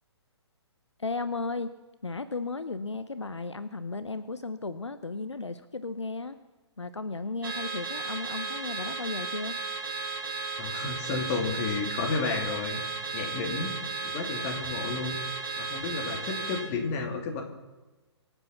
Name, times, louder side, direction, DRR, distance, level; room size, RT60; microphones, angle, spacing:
voice 1, 1.0-1.7 2.0-6.4 6.8-9.6, left 3 dB, 80° left, 12 dB, 0.8 m, -35 dB
Car / Alarm, 7.4-16.7, right 4 dB, 50° right, 4.0 m, -35 dB
voice 2, 10.6-12.9 13.1-13.7 14.0-15.2 15.6-17.4, left 4 dB, 30° left, 2 dB, 2.6 m, -32 dB
24.0 x 8.1 x 5.8 m, 1.1 s
figure-of-eight pair, 130°, 15 cm